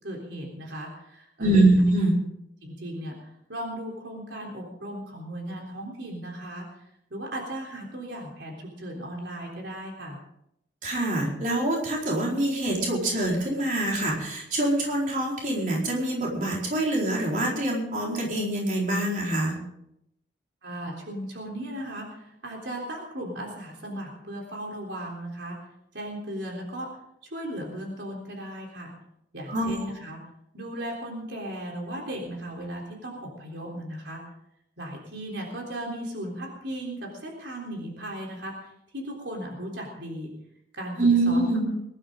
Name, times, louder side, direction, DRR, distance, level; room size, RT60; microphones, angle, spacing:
voice 1, 0.0-1.7 2.6-10.2 20.6-25.6 25.9-26.9 27.2-28.9 29.3-30.2 30.5-34.2 34.8-40.3 40.7-41.0 41.3-41.5, right 1 dB, 75° right, -1 dB, 3.6 m, -36 dB
voice 2, 1.4-2.2 10.8-19.5 29.5-29.7 41.0-41.6, right 2 dB, 45° right, -3 dB, 4.5 m, -24 dB
22.5 x 12.0 x 3.8 m, 0.78 s
head